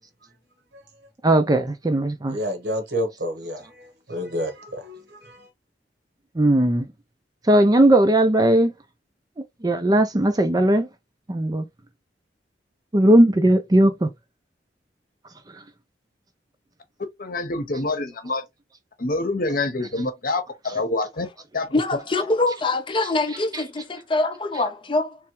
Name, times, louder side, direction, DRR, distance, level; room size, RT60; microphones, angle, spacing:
voice 1, 1.2-2.4 6.4-6.9 7.5-8.7 9.6-10.9 11.3-11.6 12.9-14.1 23.0-23.6, right 1 dB, 20° right, 0.5 m, -18 dB
voice 2, 2.3-5.5, equal, 70° right, 1.3 m, -30 dB
voice 3, 17.2-18.4 19.0-21.3 21.5-21.7, left 2 dB, 55° left, 0.9 m, -26 dB
voice 4, 21.7-25.2, left 2 dB, 30° left, 0.6 m, -24 dB
3.5 x 3.3 x 3.0 m
head